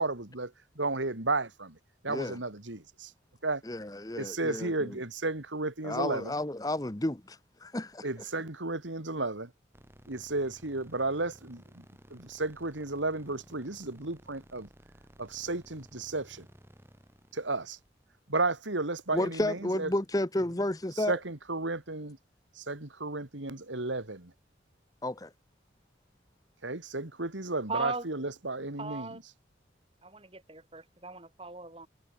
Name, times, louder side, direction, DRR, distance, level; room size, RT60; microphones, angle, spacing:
voice 1, 0.0-1.7 2.0-3.1 3.4-3.6 4.2-6.3 8.0-9.5 10.1-11.8 12.1-14.7 15.2-16.5 17.3-17.8 18.3-19.9 21.1-22.2 22.6-24.3 26.6-29.2, right 2 dB, 85° right, 2.8 m, -33 dB
voice 2, 2.1-2.4 3.6-5.0 5.8-8.1 19.1-21.2 25.0-25.3, left 1 dB, 20° left, 1.0 m, -32 dB
sound 1, 9.7-18.9, equal, 15° right, 5.7 m, -57 dB
voice 3, 27.7-28.1 28.8-29.2 30.0-31.9, right 3 dB, 30° right, 4.1 m, -38 dB
head